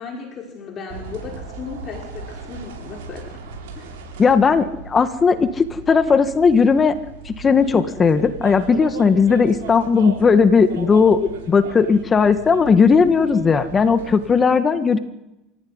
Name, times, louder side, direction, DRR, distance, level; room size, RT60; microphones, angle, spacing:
voice 1, 0.0-3.4 3.7-3.9, left 4 dB, 45° left, 0 dB, 5.8 m, -35 dB
sound 1, 0.9-14.4, right 5 dB, 75° right, 8.0 m, -37 dB
voice 2, 4.2-7.0 7.3-15.0, left 5 dB, 30° left, 10 dB, 1.9 m, -16 dB
28.0 x 17.0 x 9.8 m, 0.98 s
hypercardioid pair, 85°, 0 cm